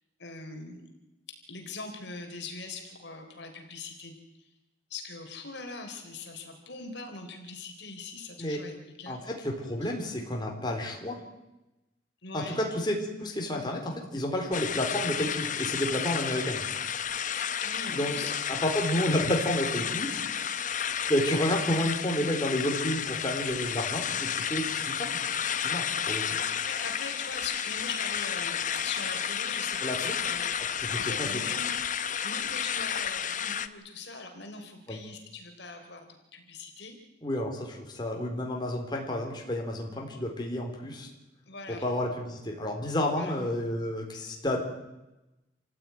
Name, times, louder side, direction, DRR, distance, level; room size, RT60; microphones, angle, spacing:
voice 1, 0.2-0.8 1.5-4.2 4.9-8.7 9.0-9.2 12.2-12.7 17.6-18.3 26.6-28.5 28.8-31.7 32.2-37.0 41.5-41.9 43.2-43.4, left 4 dB, 60° left, 4 dB, 3.8 m, -41 dB
voice 2, 9.1-11.2 12.3-16.6 17.9-18.2 18.5-20.1 21.1-25.2 25.6-26.2 29.8-30.2 30.6-31.4 34.9-35.0 37.2-41.1 41.7-44.6, left 1 dB, 20° left, 0 dB, 4.1 m, -30 dB
sound 1, 14.5-33.7, left 8 dB, 40° left, 0.9 m, -32 dB
28.0 x 15.5 x 9.5 m, 0.99 s
head